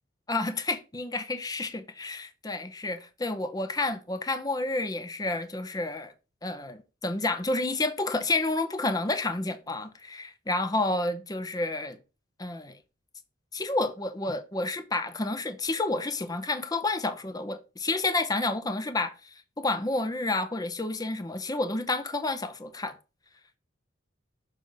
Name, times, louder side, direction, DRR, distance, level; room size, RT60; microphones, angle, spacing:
voice 1, 0.3-6.1 6.4-12.0 12.4-12.8 13.5-23.0, left 2 dB, 20° left, 0.6 m, -30 dB
6.5 x 3.3 x 5.2 m
head